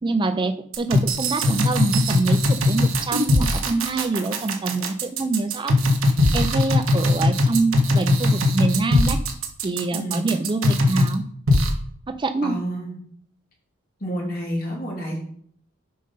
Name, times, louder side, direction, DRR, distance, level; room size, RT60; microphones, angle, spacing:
voice 1, 0.0-5.8 6.3-9.2 9.6-11.3 12.1-12.6, right 3 dB, 25° right, 9 dB, 0.4 m, -25 dB
sound 1, 0.7-11.1 11.5-11.7, left 1 dB, 70° right, 1.3 m, -20 dB
voice 2, 9.9-10.3 12.4-12.9 14.0-15.2, equal, 45° left, -2 dB, 2.9 m, -29 dB
7.6 x 5.2 x 5.3 m, 0.63 s
head